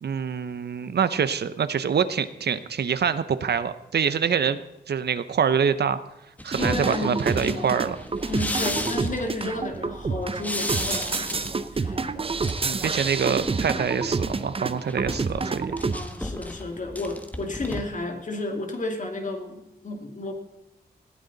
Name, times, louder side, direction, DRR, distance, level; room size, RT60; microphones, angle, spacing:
voice 1, 0.0-4.6 4.9-6.0 6.4-8.0 12.6-15.7, right 7 dB, 70° right, 13 dB, 0.8 m, -25 dB
sound 1, 6.4-9.3 10.4-11.7 12.3-13.0 13.3-13.6 14.7-17.8, left 1 dB, 10° left, 1.4 m, -34 dB
sound 2, 6.5-16.0, right 4 dB, 35° right, 0.8 m, -29 dB
voice 2, 6.6-7.7 8.3-11.5 11.7-12.0 15.9-20.3, left 2 dB, 45° left, 4 dB, 2.4 m, -32 dB
19.5 x 14.5 x 4.1 m, 0.90 s
wide cardioid pair, 110°, 17 cm